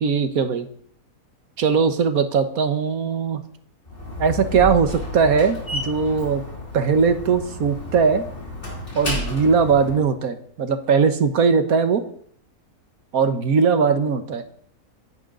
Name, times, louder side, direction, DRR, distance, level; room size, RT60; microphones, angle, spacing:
voice 1, 0.0-0.7 1.6-3.4 4.2-6.4 6.7-8.2 8.9-12.0 13.1-14.4, right 5 dB, 70° right, 9 dB, 1.7 m, -20 dB
Slam, 3.8-10.0, left 1 dB, 35° left, 3.4 m, -32 dB
25.0 x 10.5 x 4.0 m, 0.62 s
omnidirectional pair, 1.6 m